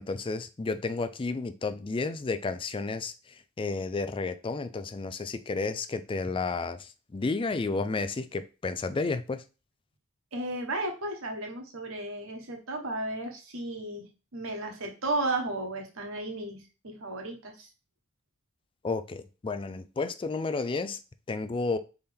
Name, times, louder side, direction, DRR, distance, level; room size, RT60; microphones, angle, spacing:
voice 1, 0.0-3.1 3.6-9.4 18.8-21.0 21.3-21.8, left 3 dB, 25° left, 0.3 m, -31 dB
voice 2, 10.3-14.0 14.3-17.7, right 2 dB, 65° right, 1.2 m, -34 dB
4.2 x 3.6 x 3.4 m
head